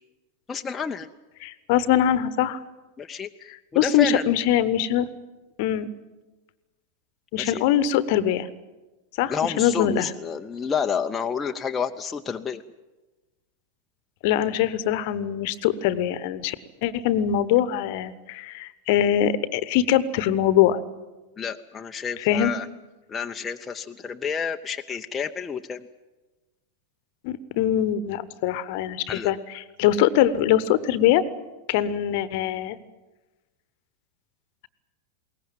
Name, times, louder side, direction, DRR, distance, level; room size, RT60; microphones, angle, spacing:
voice 1, 0.5-1.1 3.0-4.3 7.4-7.6 9.3-12.6 21.4-22.7 23.1-25.9 29.1-29.3, left 6 dB, 20° left, 4 dB, 0.7 m, -30 dB
voice 2, 1.4-2.6 3.7-5.1 5.6-5.9 7.3-8.5 9.2-10.1 14.2-16.6 16.8-20.8 22.2-22.5 27.2-29.4 29.8-31.2 31.7-32.8, left 11 dB, 50° left, 16 dB, 1.1 m, -22 dB
21.5 x 18.5 x 9.1 m, 1.2 s
figure-of-eight pair, 90°, 0 cm